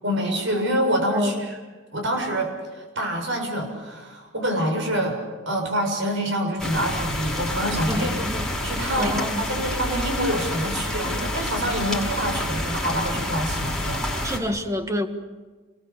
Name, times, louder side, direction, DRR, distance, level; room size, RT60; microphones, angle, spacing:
voice 1, 0.0-1.3 1.9-5.2 5.5-8.1 8.6-14.0, equal, 65° right, 3 dB, 7.2 m, -26 dB
sound 1, 6.6-14.4, left 1 dB, ahead, 5.9 m, -28 dB
voice 2, 7.9-8.5 9.0-9.5 14.2-15.1, left 1 dB, 15° right, 6 dB, 1.6 m, -27 dB
28.5 x 22.0 x 7.2 m, 1.3 s
head